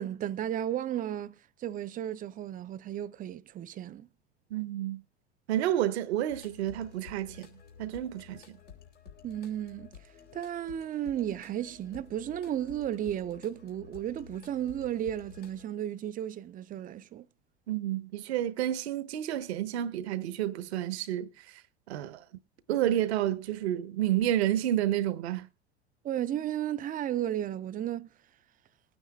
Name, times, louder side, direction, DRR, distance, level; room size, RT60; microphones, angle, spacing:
voice 1, 0.0-4.1 9.2-9.9 10.3-17.3 26.0-28.1, right 11 dB, 25° right, 0.5 m, -34 dB
voice 2, 4.5-5.0 5.5-7.5 7.8-8.6 17.7-21.6 21.9-22.2 22.7-25.5, right 12 dB, 70° right, 1.0 m, -30 dB
sound 1, 6.3-15.6, left 6 dB, 90° left, 3.4 m, -52 dB
21.0 x 9.3 x 2.3 m
hypercardioid pair, 85°, 34 cm